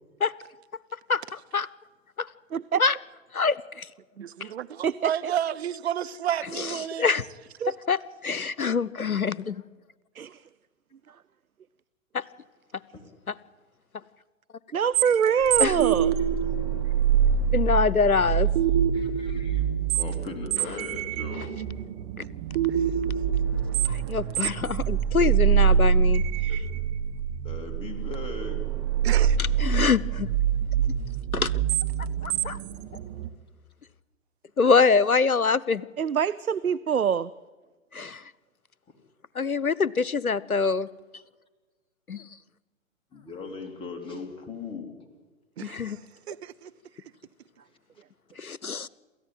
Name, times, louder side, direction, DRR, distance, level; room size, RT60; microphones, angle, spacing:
voice 1, 2.5-2.8 4.8-4.9 7.6-7.7 10.2-10.3 14.7-16.1 36.0-37.3, right 7 dB, 80° right, 0.7 m, -24 dB
voice 2, 3.3-3.9 4.4-4.5 6.6-6.7 7.0-7.2 7.9-9.6 12.1-12.2 13.3-13.4 15.6-15.8 17.5-18.5 23.8-26.2 29.6-30.3 31.3-31.5 32.2-32.6 34.6-35.8 37.9-38.2 39.4-40.9 42.1-42.2 45.6-46.0 48.4-48.9, left 5 dB, 85° left, 0.9 m, -24 dB
voice 3, 4.2-7.0 22.7-22.9 29.0-29.4 45.6-46.7, right 10 dB, 50° right, 1.0 m, -31 dB
sound 1, 14.9-33.3, right 8 dB, 30° right, 1.3 m, -25 dB
voice 4, 18.9-19.7 19.9-21.7 26.5-26.6 27.4-28.7 43.1-45.0, left 4 dB, 10° left, 2.8 m, -39 dB
27.5 x 14.5 x 9.4 m
figure-of-eight pair, 120°, 42 cm